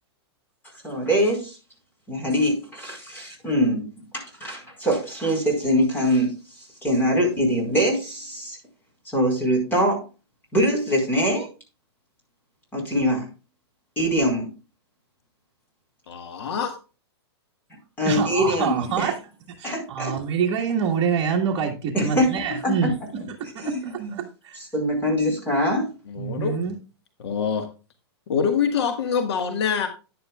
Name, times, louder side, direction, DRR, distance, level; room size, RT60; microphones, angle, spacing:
voice 1, 0.8-1.6 2.1-3.9 4.1-6.3 6.8-8.6 9.0-10.0 10.5-11.5 12.7-13.3 14.0-14.5 18.0-19.1 19.6-20.1 21.9-22.4 22.6-22.7 23.6-24.1 24.7-25.9, equal, 15° left, 0 dB, 4.6 m, -23 dB
voice 2, 16.1-16.8 26.1-26.5 27.2-27.7 28.3-29.9, left 6 dB, 70° left, 6 dB, 1.6 m, -25 dB
voice 3, 18.0-19.2 19.6-23.0 23.3-24.6 26.1-26.7, right 7 dB, 35° right, -3 dB, 1.7 m, -26 dB
11.0 x 10.5 x 2.4 m, 0.32 s
hypercardioid pair, 155°, 14 cm